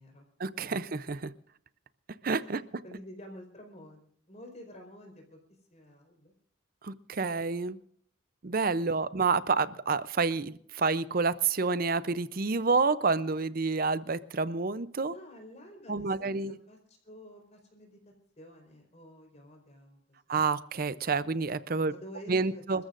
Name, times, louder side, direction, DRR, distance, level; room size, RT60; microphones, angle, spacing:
voice 1, 0.4-1.3 2.2-2.6 6.8-7.8 8.4-15.1 15.9-16.5 20.3-21.9 22.3-22.8, right 4 dB, 45° right, 15 dB, 0.6 m, -29 dB
voice 2, 2.8-5.4 5.7-6.3 15.0-18.0 18.4-20.0 21.8-22.6, equal, 35° left, 2 dB, 4.4 m, -50 dB
28.0 x 14.0 x 2.5 m, 0.64 s
head